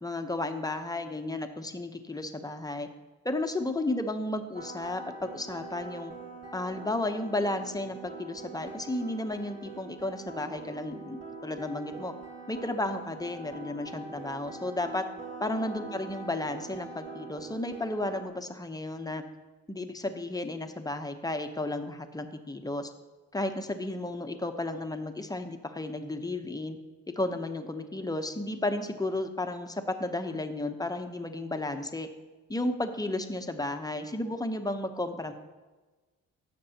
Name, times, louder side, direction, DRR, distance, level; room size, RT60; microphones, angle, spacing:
voice 1, 0.0-2.9 3.2-6.1 6.5-12.1 12.5-15.0 15.4-19.2 19.7-22.9 23.3-26.8 27.2-32.1 32.5-35.3, left 2 dB, 10° left, 6 dB, 0.8 m, -33 dB
sound 1, 4.5-18.3, right 3 dB, 35° right, 2.6 m, -44 dB
15.5 x 6.7 x 2.8 m, 1.2 s
cardioid pair, 90°, 30 cm